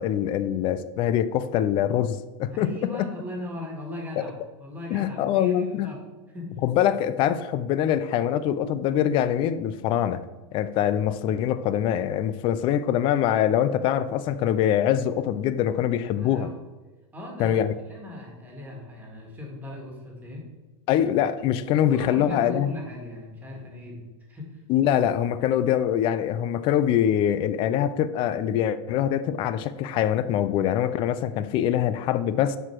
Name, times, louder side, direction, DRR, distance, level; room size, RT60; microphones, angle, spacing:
voice 1, 0.0-2.7 4.9-5.9 6.6-10.2 10.5-16.5 17.4-17.7 20.9-22.7 24.7-32.6, left 10 dB, 35° left, 0.5 m, -24 dB
voice 2, 2.5-6.0 6.3-6.5 16.1-16.6 17.1-20.5 21.9-24.6, left 1 dB, 10° right, 1.9 m, -38 dB
9.9 x 4.8 x 4.5 m
supercardioid pair, 160°, 15 cm